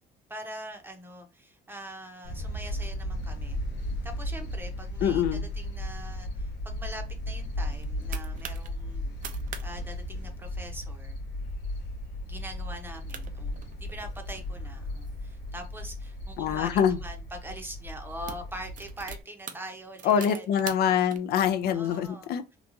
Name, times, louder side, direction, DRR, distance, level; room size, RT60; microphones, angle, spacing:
voice 1, 0.3-3.6 4.0-9.1 9.6-11.2 12.2-20.4 20.8-20.9 21.7-22.6, right 1 dB, 10° right, 0.7 m, -43 dB
sound 1, 2.2-19.2, left 1 dB, 90° left, 0.8 m, -35 dB
voice 2, 5.0-5.4 16.4-17.0 20.1-22.6, left 8 dB, 70° left, 0.4 m, -25 dB
sound 2, 7.5-8.7 9.1-9.7 9.9-10.0 10.4-10.7 11.3-11.5 12.0-12.1 12.8-12.9 13.1-14.3 14.9-16.8 17.5-17.7 18.0-21.2, right 8 dB, 50° right, 0.5 m, -44 dB
2.9 x 2.3 x 2.5 m
cardioid pair, 110°, 17 cm